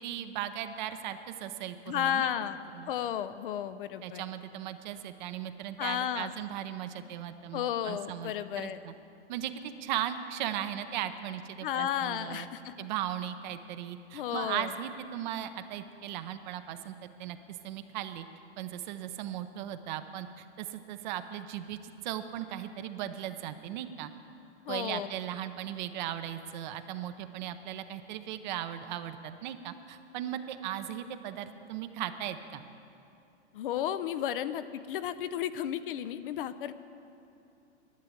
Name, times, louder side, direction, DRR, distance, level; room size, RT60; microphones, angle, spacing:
voice 1, 0.0-2.3 2.7-2.9 4.0-8.9 9.3-12.5 12.8-17.4 17.6-18.3 18.6-24.1 24.7-32.6, right 11 dB, 40° right, 10 dB, 0.8 m, -37 dB
voice 2, 1.9-2.6 2.9-4.2 5.8-6.3 7.5-8.8 11.6-12.9 14.1-14.7 24.7-25.1 33.5-36.7, left 10 dB, 50° left, 13 dB, 0.6 m, -33 dB
11.5 x 9.3 x 8.5 m, 2.7 s
hypercardioid pair, 140°, 35 cm